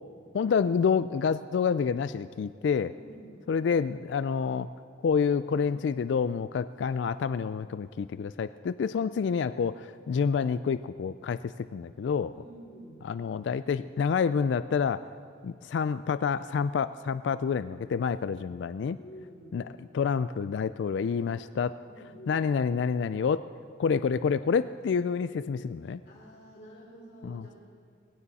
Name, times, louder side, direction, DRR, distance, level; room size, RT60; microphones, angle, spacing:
voice 1, 0.3-2.9 3.5-4.7 5.0-12.3 13.0-15.1 15.4-19.0 19.5-21.8 22.3-23.4 23.8-26.0 27.2-27.5, left 6 dB, 80° left, 14 dB, 0.3 m, -28 dB
voice 2, 2.9-3.5 12.3-13.1 19.0-19.7 21.9-22.4 26.0-27.6, right 1 dB, 55° left, -8 dB, 3.3 m, -49 dB
19.5 x 16.5 x 4.2 m, 2.3 s
head